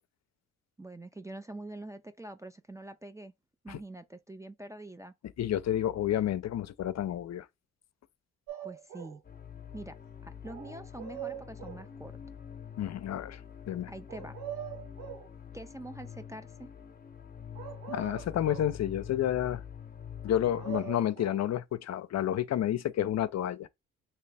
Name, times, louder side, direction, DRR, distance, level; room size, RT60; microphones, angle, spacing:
voice 1, 0.8-3.3 3.6-5.1 8.6-9.2 9.7-10.0 10.2-12.1 13.9-14.4 15.5-16.7, right 2 dB, 10° right, 0.4 m, -45 dB
voice 2, 5.4-7.5 12.8-13.4 13.7-13.9 17.9-19.6 20.2-23.7, left 11 dB, 55° left, 0.5 m, -30 dB
sound 1, 8.5-9.2 10.4-11.9 14.1-15.3 17.6-18.8 20.3-21.4, right 11 dB, 85° right, 1.4 m, -42 dB
sound 2, 9.2-20.8, left 8 dB, 25° left, 0.8 m, -46 dB
3.3 x 2.9 x 3.3 m
supercardioid pair, 65°, 33 cm